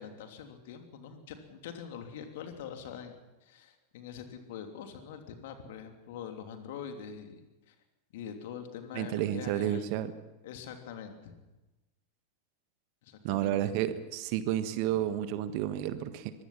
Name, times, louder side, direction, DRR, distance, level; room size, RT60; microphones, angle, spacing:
voice 1, 0.0-3.1 3.4-7.7 8.1-9.9 10.4-11.3 13.0-13.5, left 8 dB, 55° left, 5 dB, 3.1 m, -44 dB
voice 2, 8.9-10.1 13.2-16.3, right 11 dB, 45° right, 12 dB, 1.5 m, -31 dB
23.5 x 22.0 x 5.9 m, 1.1 s
figure-of-eight pair, 90°, 0 cm